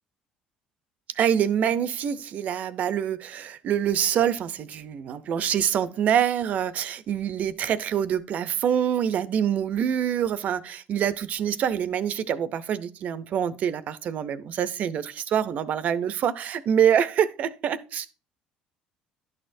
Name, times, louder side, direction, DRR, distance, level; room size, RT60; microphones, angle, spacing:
voice 1, 1.1-18.1, right 9 dB, 55° right, 0.6 m, -25 dB
11.0 x 6.5 x 2.6 m
cardioid pair, 100°, 3 cm